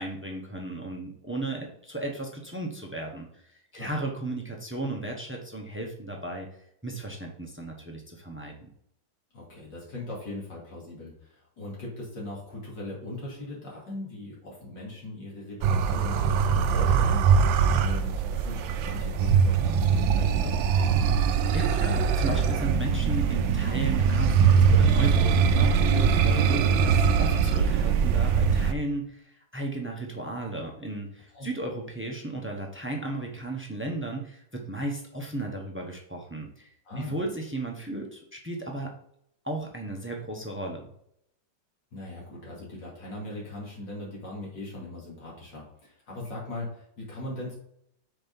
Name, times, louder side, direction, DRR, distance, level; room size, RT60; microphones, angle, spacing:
voice 1, 0.0-6.5 6.8-8.5 21.5-36.7 37.0-38.9 39.4-40.9, right 2 dB, 10° right, 1 dB, 0.5 m, -35 dB
voice 2, 9.3-17.2 17.8-20.6 31.3-31.5 36.8-37.2 41.9-47.6, left 1 dB, 70° left, -4 dB, 3.2 m, -39 dB
sound 1, 15.6-28.7, right 6 dB, 85° right, 1.4 m, -22 dB
6.3 x 4.6 x 5.3 m, 0.73 s
omnidirectional pair, 2.1 m